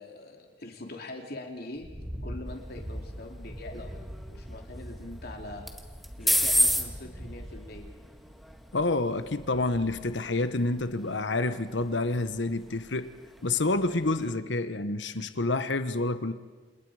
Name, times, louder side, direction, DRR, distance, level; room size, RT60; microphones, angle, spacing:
voice 1, 0.0-1.9 2.2-3.9 4.3-5.7 6.2-7.9, left 2 dB, 60° left, 2.7 m, -43 dB
sound 1, 1.8-10.3 10.7-11.0 11.6-12.5 12.8-13.2, equal, 20° right, 5.5 m, -43 dB
sound 2, 2.5-14.4, equal, ahead, 1.7 m, -34 dB
voice 2, 8.7-13.1 13.4-16.3, left 2 dB, 80° left, 1.1 m, -28 dB
29.0 x 28.0 x 4.9 m
head